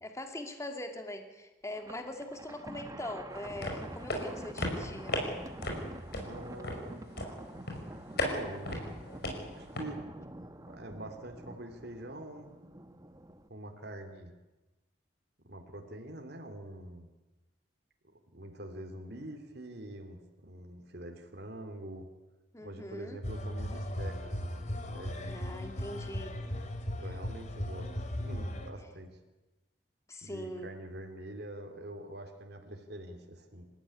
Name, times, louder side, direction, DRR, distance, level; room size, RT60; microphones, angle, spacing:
voice 1, 0.0-5.2 22.5-23.2 25.3-26.4 30.1-30.7, left 1 dB, 15° left, 5 dB, 2.3 m, -42 dB
Thunder, 1.7-13.5, right 1 dB, 20° right, 1.1 m, -47 dB
sound 1, 3.3-9.8, left 1 dB, 60° left, 5.7 m, -37 dB
voice 2, 6.2-7.0 8.1-8.9 9.4-10.0 10.7-12.5 13.5-14.3 15.4-17.1 18.3-22.1 22.6-24.4 24.8-25.4 26.8-27.9 28.2-29.2 30.2-33.6, right 1 dB, 60° right, 4 dB, 2.8 m, -45 dB
sound 2, 23.2-28.7, left 1 dB, 40° left, 2.7 m, -37 dB
27.0 x 14.5 x 9.9 m, 1.1 s
head